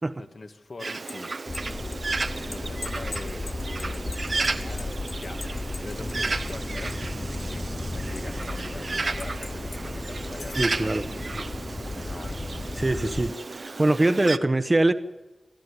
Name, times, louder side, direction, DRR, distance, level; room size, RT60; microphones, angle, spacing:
voice 1, 0.1-1.3 2.1-4.9 5.2-10.9 11.2-11.3 11.9-12.8, left 3 dB, 60° left, 6 dB, 2.0 m, -43 dB
sound 1, 0.8-7.1 7.4-8.6 9.2-9.8 10.2-10.8, left 5 dB, 90° left, 0.7 m, -43 dB
Bird, 0.8-14.4, right 3 dB, 55° right, 0.9 m, -33 dB
sound 2, 1.5-13.3, left 2 dB, 35° left, 0.7 m, -35 dB
voice 2, 10.5-11.1 12.8-14.9, right 2 dB, 30° right, 9 dB, 1.2 m, -23 dB
26.0 x 14.0 x 10.0 m, 1.1 s
wide cardioid pair, 85°, 0 cm